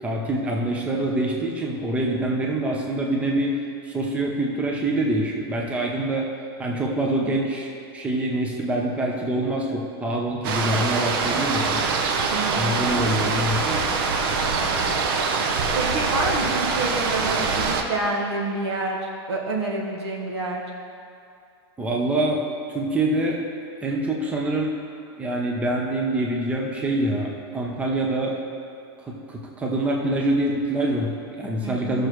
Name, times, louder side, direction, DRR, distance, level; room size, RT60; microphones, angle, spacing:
voice 1, 0.0-3.6 3.8-6.3 6.6-11.9 12.5-13.8 21.8-22.4 22.7-23.4 23.8-24.7 25.2-28.4 29.0-32.1, right 1 dB, 10° right, -1 dB, 0.8 m, -25 dB
sound 1, 10.4-17.8, right 4 dB, 55° right, 0.8 m, -24 dB
voice 2, 12.3-12.7 15.7-19.0 19.3-20.6 31.6-32.1, right 2 dB, 80° right, -1 dB, 1.6 m, -28 dB
13.5 x 6.4 x 3.1 m, 2.5 s
supercardioid pair, 145°, 14 cm